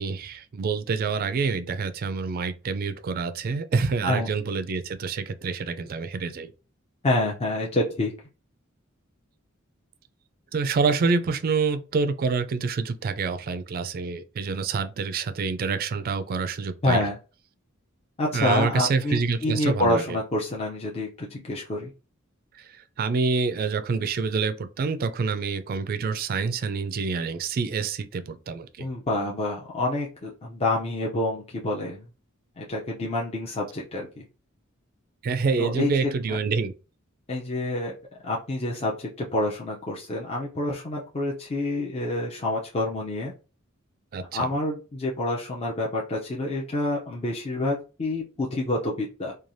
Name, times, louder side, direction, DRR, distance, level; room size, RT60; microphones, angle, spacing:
voice 1, 0.0-6.5 10.5-17.0 18.3-20.0 22.6-28.9 35.2-36.7 44.1-44.5, right 4 dB, 45° right, 0.3 m, -27 dB
voice 2, 7.0-8.1 16.8-17.2 18.2-21.9 28.8-32.1 32.6-34.2 35.6-36.4 37.3-37.9 38.2-43.3 44.3-49.3, left 1 dB, 30° left, 0.5 m, -27 dB
3.1 x 2.3 x 2.5 m
head